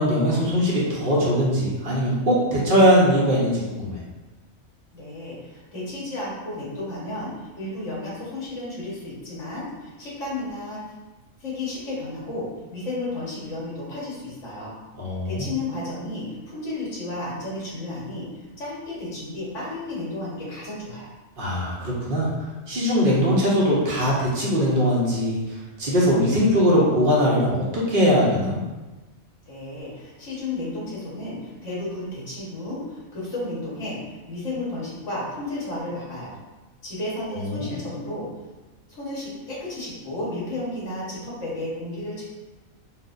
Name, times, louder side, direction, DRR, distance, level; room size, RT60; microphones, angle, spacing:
voice 1, 0.0-4.0 15.0-15.5 21.4-22.3 22.7-25.4 25.8-28.6 37.3-37.7, equal, 45° right, -6 dB, 0.9 m, -21 dB
voice 2, 4.9-10.8 11.4-14.7 15.2-21.1 29.5-36.4 36.8-38.3 38.9-42.2, left 2 dB, 65° left, -6 dB, 1.6 m, -33 dB
4.2 x 2.5 x 2.5 m, 1.2 s
omnidirectional pair, 1.4 m